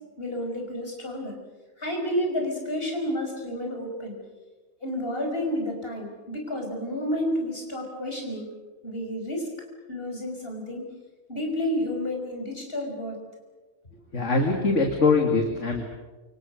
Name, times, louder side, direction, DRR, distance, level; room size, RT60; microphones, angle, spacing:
voice 1, 0.2-1.3 1.8-4.2 4.8-8.5 8.8-9.5 9.9-10.9 11.3-13.2, left 1 dB, 40° left, 2 dB, 5.9 m, -30 dB
voice 2, 14.1-15.8, left 3 dB, 55° left, 3 dB, 2.7 m, -22 dB
28.0 x 26.0 x 6.5 m, 1.2 s
omnidirectional pair, 1.5 m